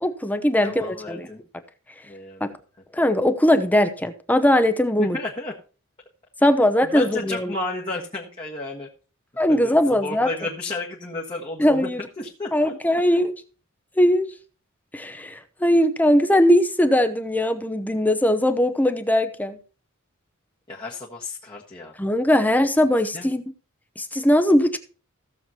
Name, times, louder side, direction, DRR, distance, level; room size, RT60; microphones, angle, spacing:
voice 1, 0.0-1.3 2.4-2.5 2.9-5.2 6.4-7.5 9.4-10.3 11.6-12.0 12.5-13.3 14.0-14.3 14.9-19.6 22.0-23.4 24.0-24.8, left 1 dB, 10° left, 0.8 m, -20 dB
voice 2, 0.5-1.4 2.1-2.4 5.0-5.5 6.8-8.9 9.5-11.9 12.2-12.7 20.7-21.9 23.1-23.3, left 2 dB, 25° left, 1.5 m, -32 dB
16.5 x 7.2 x 2.9 m
head